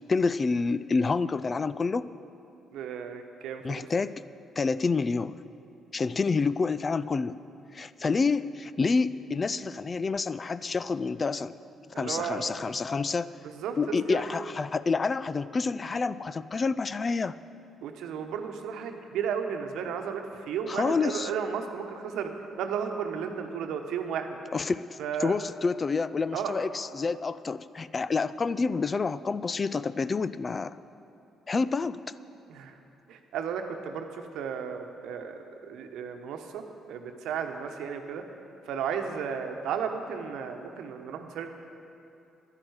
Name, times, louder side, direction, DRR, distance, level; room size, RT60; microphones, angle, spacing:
voice 1, 0.1-2.1 3.6-4.2 4.6-5.3 5.9-7.4 7.7-11.5 12.0-13.3 13.8-17.4 20.7-21.3 24.5-30.8 31.5-32.0, left 4 dB, 40° left, 16 dB, 0.4 m, -28 dB
voice 2, 2.7-3.9 8.0-8.2 11.9-12.4 13.4-14.3 17.8-22.3 22.6-24.4 25.0-25.3 26.3-26.5 32.5-32.8 33.1-38.2 38.6-41.5, right 7 dB, 70° right, 5 dB, 1.1 m, -34 dB
11.0 x 10.5 x 8.0 m, 2.8 s
hypercardioid pair, 50°, 0 cm